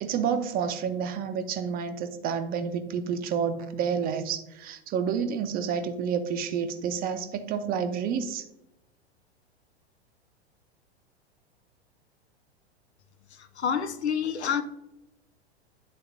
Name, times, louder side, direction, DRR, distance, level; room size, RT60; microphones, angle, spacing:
voice 1, 0.0-8.4, right 7 dB, 25° right, 0.7 m, -29 dB
voice 2, 13.3-14.6, left 7 dB, 80° left, 0.6 m, -28 dB
10.0 x 3.8 x 2.6 m
figure-of-eight pair, 95°, 32 cm